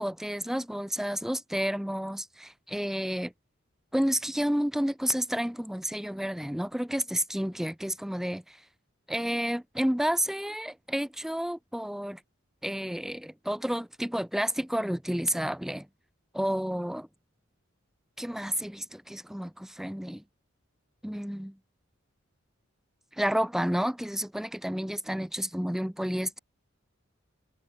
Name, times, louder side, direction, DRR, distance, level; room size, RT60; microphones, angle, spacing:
voice 1, 0.0-3.3 3.9-8.6 9.1-12.2 12.6-15.9 16.3-17.1 18.2-20.2 21.0-21.6 23.1-26.4, equal, ahead, 0.4 m, -30 dB
head